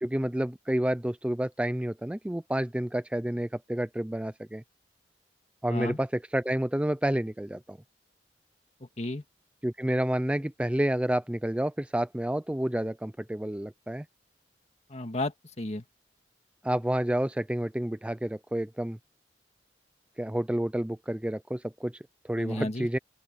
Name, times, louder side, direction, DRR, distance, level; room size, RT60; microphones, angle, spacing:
voice 1, 0.0-4.6 5.6-7.8 9.6-14.1 16.6-19.0 20.2-23.0, right 1 dB, 5° right, 0.4 m, -29 dB
voice 2, 8.8-9.2 14.9-15.9 22.4-22.9, left 2 dB, 40° left, 1.8 m, -33 dB
open air
head